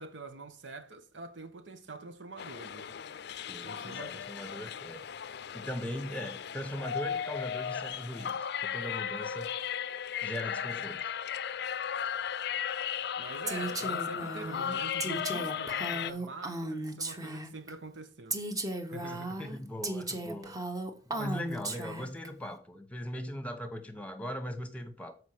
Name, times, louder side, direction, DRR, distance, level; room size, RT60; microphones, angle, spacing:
voice 1, 0.0-2.9 3.6-4.2 13.2-18.4 18.9-19.4, right 3 dB, 80° right, 1.1 m, -45 dB
sound 1, 2.4-16.1, left 8 dB, 65° left, 0.5 m, -36 dB
voice 2, 3.5-5.0 5.5-9.5 10.2-11.0 19.4-20.5 21.1-25.2, equal, 10° left, 1.1 m, -39 dB
Female speech woman speaking, 13.5-17.7 18.3-22.3, right 2 dB, 20° right, 1.0 m, -36 dB
7.2 x 4.9 x 6.4 m
head